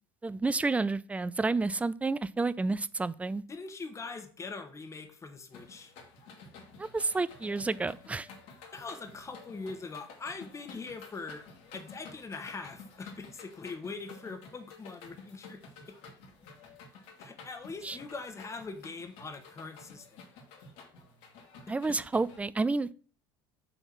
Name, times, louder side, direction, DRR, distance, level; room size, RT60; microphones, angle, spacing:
voice 1, 0.2-3.4 6.8-8.3 17.8-18.0 21.7-22.9, right 3 dB, 10° right, 17 dB, 0.4 m, -30 dB
voice 2, 3.5-5.9 8.7-11.4 11.7-16.0 17.2-20.2 21.7-22.0, left 4 dB, 20° left, 6 dB, 1.3 m, -42 dB
sound 1, 5.5-22.4, left 4 dB, 60° left, 2.0 m, -52 dB
6.9 x 3.6 x 6.1 m, 0.43 s
hypercardioid pair, 75°, 13 cm